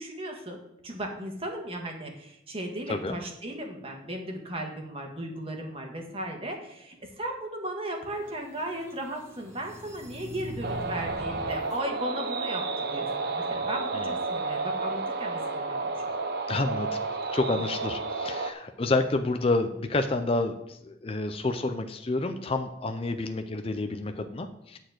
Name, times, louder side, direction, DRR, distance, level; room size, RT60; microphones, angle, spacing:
voice 1, 0.0-16.1, right 1 dB, 30° right, 2 dB, 1.6 m, -36 dB
sound 1, 8.0-11.8, left 1 dB, 15° right, 1.8 m, -42 dB
sound 2, 10.6-18.5, right 3 dB, 55° right, 0.9 m, -31 dB
voice 2, 16.5-16.9 17.3-24.8, left 2 dB, 30° left, 7 dB, 0.5 m, -29 dB
10.0 x 4.4 x 7.7 m, 0.81 s
head